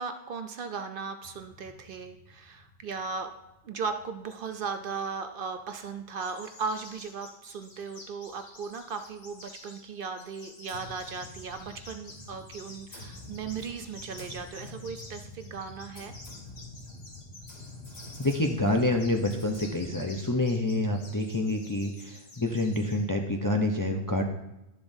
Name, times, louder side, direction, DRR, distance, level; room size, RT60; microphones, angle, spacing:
voice 1, 0.0-3.3 3.6-16.1, right 5 dB, 60° right, 8 dB, 0.7 m, -37 dB
sound 1, 1.2-5.2 5.5-5.7 6.2-6.3 6.6-6.8 7.8-7.9 8.4-8.5 10.7-20.0, left 1 dB, 90° left, 2.5 m, -47 dB
sound 2, 6.2-23.0, left 2 dB, 65° left, 1.8 m, -50 dB
voice 2, 18.2-24.2, left 2 dB, 25° left, 3 dB, 0.4 m, -27 dB
11.5 x 7.0 x 2.7 m, 0.93 s
omnidirectional pair, 1.1 m